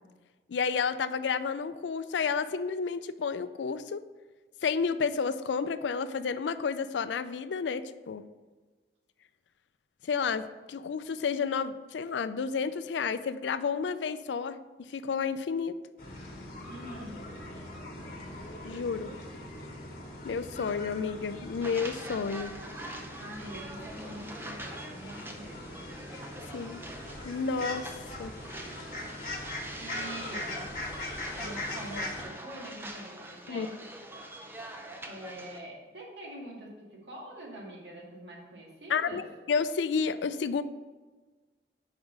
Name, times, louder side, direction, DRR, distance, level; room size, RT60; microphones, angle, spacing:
voice 1, 0.5-4.0 4.6-8.3 10.1-15.7 18.6-19.1 20.2-22.6 26.4-26.8 27.2-27.9 28.2-28.3 33.5-33.7 38.9-40.6, left 5 dB, 80° left, 12 dB, 0.4 m, -31 dB
sound 1, 16.0-32.2, left 1 dB, 50° left, 1.4 m, -41 dB
voice 2, 16.7-17.3 23.2-25.9 29.8-30.6 31.3-33.8 35.0-39.3, right 1 dB, 80° right, -3 dB, 2.0 m, -44 dB
sound 2, 21.6-35.6, right 1 dB, 10° right, 0.5 m, -44 dB
5.5 x 4.9 x 6.3 m, 1.3 s
head